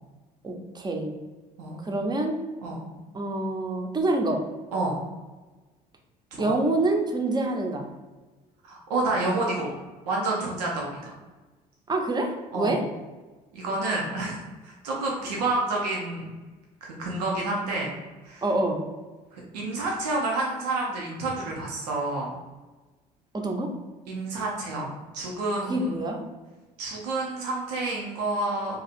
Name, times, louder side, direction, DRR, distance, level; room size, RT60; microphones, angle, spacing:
voice 1, 0.4-1.1 1.8-2.4 3.1-4.4 6.4-7.9 11.9-12.8 18.4-18.8 23.3-23.7 25.7-26.2, right 2 dB, 20° right, 3 dB, 0.7 m, -26 dB
voice 2, 8.6-9.7 10.1-11.1 12.5-12.8 13.5-16.3 16.8-17.9 18.2-18.4 19.3-22.3 24.1-26.0 26.8-28.8, right 2 dB, 85° right, -3 dB, 0.6 m, -29 dB
2.7 x 2.4 x 4.1 m, 1.2 s
hypercardioid pair, 65°, 20 cm